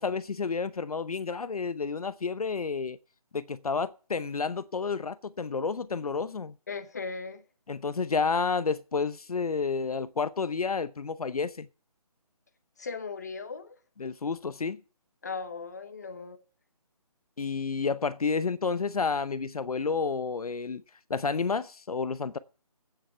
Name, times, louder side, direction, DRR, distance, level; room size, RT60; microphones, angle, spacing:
voice 1, 0.0-3.0 3.3-6.5 7.7-11.7 14.0-14.8 17.4-20.8 21.1-22.4, left 5 dB, 70° left, 0.7 m, -30 dB
voice 2, 6.7-7.4 12.8-13.8 15.2-16.4, left 4 dB, 25° left, 0.9 m, -37 dB
9.0 x 7.7 x 8.0 m
hypercardioid pair, 175°, 20 cm